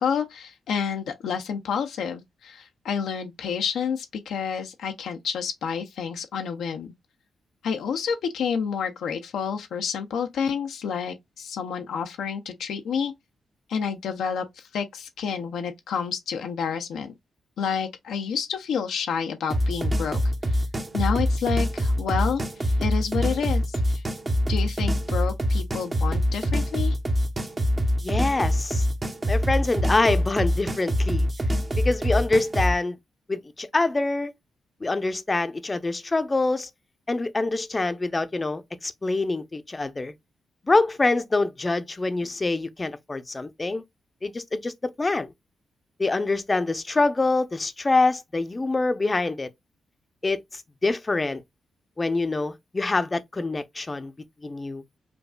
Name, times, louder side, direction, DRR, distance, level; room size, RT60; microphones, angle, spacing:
voice 1, 0.0-6.9 7.6-13.1 13.7-17.1 17.6-20.6 20.9-24.0 24.5-27.0, left 7 dB, 85° left, 0.5 m, -29 dB
sound 1, 19.5-32.7, equal, 30° right, 0.9 m, -25 dB
voice 2, 28.0-28.9 29.3-31.3 31.8-33.0 33.3-34.3 34.8-36.7 37.1-40.1 40.7-43.8 44.2-45.3 46.0-49.5 50.2-51.4 52.0-54.1 54.4-54.8, left 3 dB, 30° left, 0.6 m, -25 dB
5.0 x 2.3 x 2.2 m
cardioid pair, 60°, 0 cm